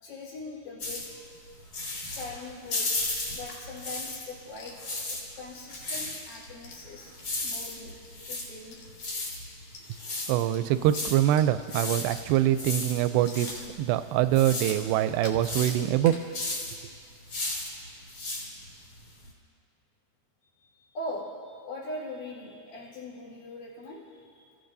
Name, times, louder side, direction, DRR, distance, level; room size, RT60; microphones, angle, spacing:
voice 1, 0.0-1.3 2.0-4.8 5.1-7.1 7.4-7.9 8.3-8.8 20.6-24.5, left 2 dB, 85° left, -7 dB, 6.4 m, -41 dB
sound 1, 0.8-4.4 4.7-19.3, left 2 dB, 40° left, 3.8 m, -35 dB
sound 2, 4.5-5.0 5.4-15.4 15.7-16.3 16.7-16.8 17.1-17.4 17.7-17.8 18.3-18.4, left 3 dB, 60° left, 2.4 m, -49 dB
voice 2, 10.3-16.1, right 12 dB, 85° right, 11 dB, 2.6 m, -24 dB
29.5 x 15.0 x 2.7 m, 2.4 s
omnidirectional pair, 4.7 m